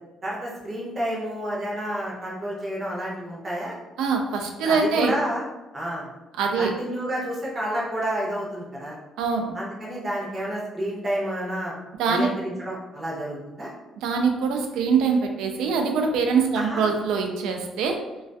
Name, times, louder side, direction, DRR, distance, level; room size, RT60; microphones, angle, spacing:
voice 1, 0.2-3.7 4.6-5.4 5.7-6.1 6.6-9.0 9.5-11.7 12.1-13.7 16.5-16.9, equal, 20° right, -5 dB, 0.5 m, -30 dB
voice 2, 4.0-5.2 6.4-6.7 9.2-9.5 12.0-12.3 14.0-18.0, right 5 dB, 85° right, 3 dB, 0.3 m, -23 dB
2.3 x 2.3 x 2.5 m, 1.1 s
cardioid pair, 170°, 0 cm